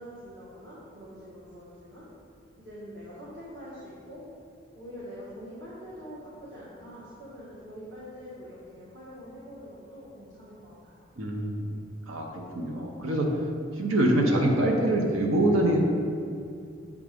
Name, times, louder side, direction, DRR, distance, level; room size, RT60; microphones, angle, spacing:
voice 1, 0.0-2.1 2.6-4.2 4.7-11.1, equal, 55° right, -9 dB, 1.4 m, -44 dB
voice 2, 11.2-11.7 12.1-13.3 13.7-15.8, right 1 dB, 85° right, 0 dB, 0.9 m, -25 dB
7.3 x 3.6 x 5.1 m, 2.4 s
head